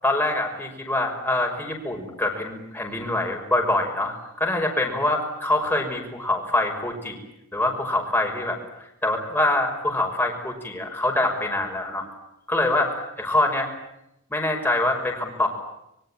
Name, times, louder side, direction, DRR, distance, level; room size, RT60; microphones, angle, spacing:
voice 1, 0.0-7.2 7.5-8.6 9.0-12.1 12.5-13.7 14.3-15.5, left 2 dB, 10° left, 1 dB, 5.9 m, -24 dB
25.5 x 23.5 x 9.0 m, 0.83 s
head